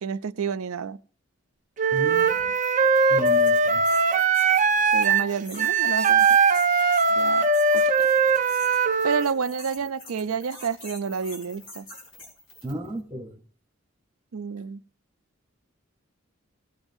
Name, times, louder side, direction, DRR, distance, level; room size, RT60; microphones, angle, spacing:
voice 1, 0.0-1.0 4.9-6.3 7.1-7.5 7.7-7.8 9.0-11.9 14.3-14.8, right 6 dB, 85° right, 0.5 m, -29 dB
Wind instrument woodwind instrument, 1.8-9.3, right 4 dB, 35° right, 0.6 m, -20 dB
voice 2, 1.9-2.6 3.1-3.8 12.6-13.4, right 2 dB, 15° right, 1.0 m, -34 dB
sound 1, 2.0-12.9, left 2 dB, 60° left, 5.2 m, -45 dB
17.5 x 8.8 x 2.6 m
head